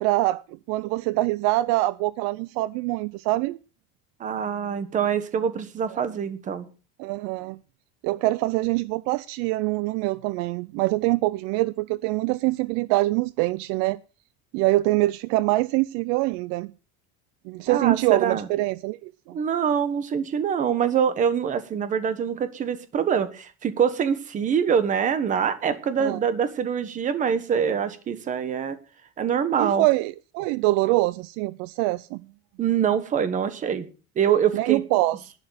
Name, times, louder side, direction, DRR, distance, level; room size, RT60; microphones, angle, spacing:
voice 1, 0.0-3.6 7.0-7.6 8.0-14.0 14.5-16.7 17.5-19.1 26.0-26.2 29.6-32.2 34.5-35.3, right 19 dB, 60° right, 18 dB, 0.5 m, -24 dB
voice 2, 4.2-6.7 17.7-18.5 19.3-28.8 29.2-29.9 32.6-33.9 34.2-34.8, right 7 dB, 25° right, 12 dB, 1.3 m, -24 dB
12.0 x 9.8 x 6.3 m, 0.35 s
cardioid pair, 180°, 30 cm